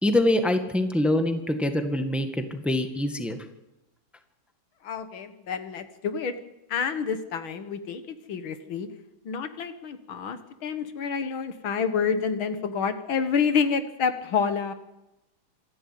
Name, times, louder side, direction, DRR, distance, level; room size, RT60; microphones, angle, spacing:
voice 1, 0.0-3.4, left 1 dB, ahead, 6 dB, 1.6 m, -24 dB
voice 2, 4.8-6.3 6.7-8.9 9.2-14.7, left 6 dB, 80° left, 10 dB, 2.2 m, -28 dB
26.5 x 11.5 x 9.4 m, 0.95 s
omnidirectional pair, 2.2 m